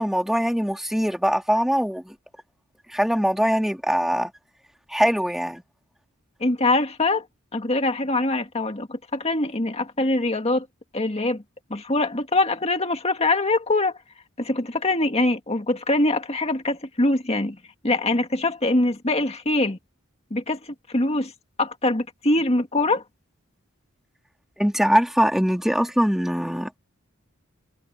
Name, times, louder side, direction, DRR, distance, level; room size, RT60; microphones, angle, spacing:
voice 1, 0.0-2.1 2.9-4.3 4.9-5.6 24.6-26.8, equal, ahead, 2.2 m, -22 dB
voice 2, 6.4-7.3 7.5-10.7 10.9-11.4 11.7-14.0 14.4-17.6 17.8-19.8 20.3-21.3 21.6-23.0, left 2 dB, 30° left, 2.1 m, -23 dB
head